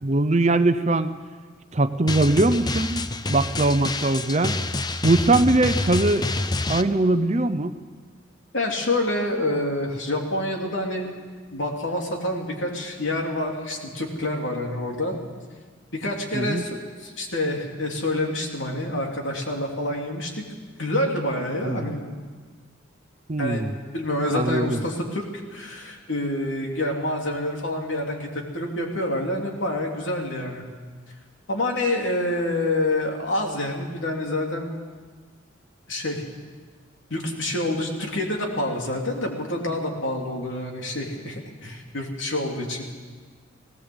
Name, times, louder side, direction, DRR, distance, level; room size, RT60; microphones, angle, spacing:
voice 1, 0.0-1.1 1.7-4.6 5.0-6.3 6.7-7.7 16.3-16.6 21.6-21.9 23.3-23.7 24.3-24.8, right 2 dB, 35° right, 10 dB, 0.7 m, -21 dB
Drum, 2.1-6.8, left 2 dB, 20° left, 0.6 m, -27 dB
voice 2, 8.5-11.1 11.5-15.2 15.9-20.4 20.8-22.1 23.4-23.6 23.9-30.6 31.5-34.7 35.9-36.2 37.1-42.9, left 1 dB, 70° left, 1 dB, 3.2 m, -27 dB
18.5 x 18.0 x 8.0 m, 1.5 s
head